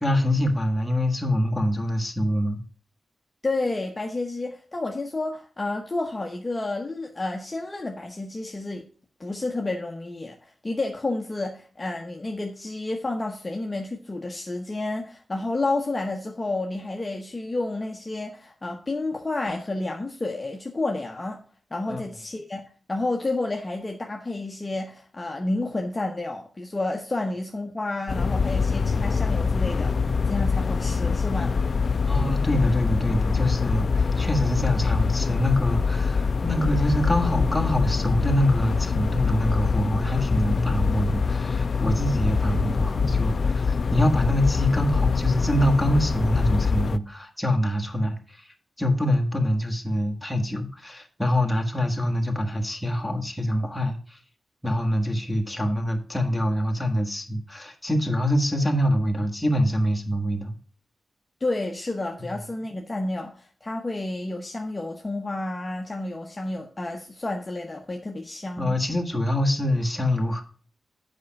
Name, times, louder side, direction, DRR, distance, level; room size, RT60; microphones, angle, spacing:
voice 1, 0.0-2.6 21.9-22.0 32.1-54.2 54.6-60.5 62.2-62.3 68.6-70.4, equal, 5° left, 1.6 m, -25 dB
voice 2, 3.4-8.8 9.2-21.4 21.7-22.6 22.9-29.9 30.2-31.6 61.4-68.8, left 2 dB, 20° left, 0.9 m, -30 dB
Room Tone Ambience Medium Control Low Hum, 28.1-47.0, left 5 dB, 50° left, 0.4 m, -24 dB
8.3 x 5.2 x 5.8 m
wide cardioid pair, 130°, 0 cm